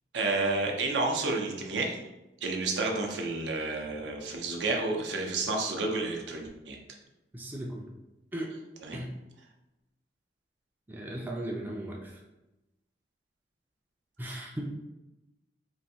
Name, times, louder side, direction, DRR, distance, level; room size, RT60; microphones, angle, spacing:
voice 1, 0.1-2.0 2.4-6.8 8.8-9.0, right 3 dB, 75° right, 1 dB, 0.5 m, -30 dB
voice 2, 7.3-7.8 8.3-8.5 8.9-9.1 10.9-12.1 14.2-14.6, right 1 dB, 10° right, -1 dB, 0.3 m, -37 dB
3.0 x 2.6 x 2.7 m, 0.97 s
head